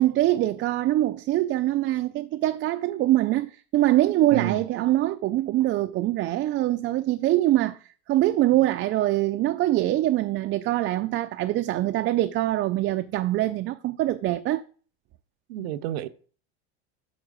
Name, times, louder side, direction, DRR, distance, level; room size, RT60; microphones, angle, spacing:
voice 1, 0.0-14.6, right 15 dB, 40° right, 0.5 m, -24 dB
voice 2, 4.3-4.6 15.5-16.1, right 11 dB, 80° right, 0.7 m, -29 dB
7.5 x 4.6 x 6.5 m
supercardioid pair, 110°, 31 cm